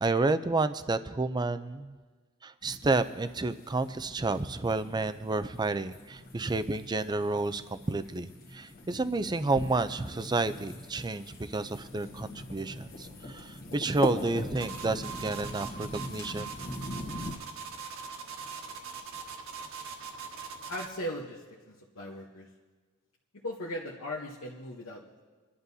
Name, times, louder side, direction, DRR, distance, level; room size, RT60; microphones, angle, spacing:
voice 1, 0.0-1.9 2.4-16.5, right 3 dB, 20° right, 12 dB, 0.5 m, -30 dB
sound 1, 2.6-17.3, left 1 dB, 45° left, 1.4 m, -41 dB
sound 2, 14.6-21.0, right 6 dB, 70° right, 1.5 m, -41 dB
voice 2, 20.7-22.5 23.4-25.2, left 1 dB, 70° left, -3 dB, 1.0 m, -38 dB
27.0 x 11.5 x 2.7 m, 1.4 s
head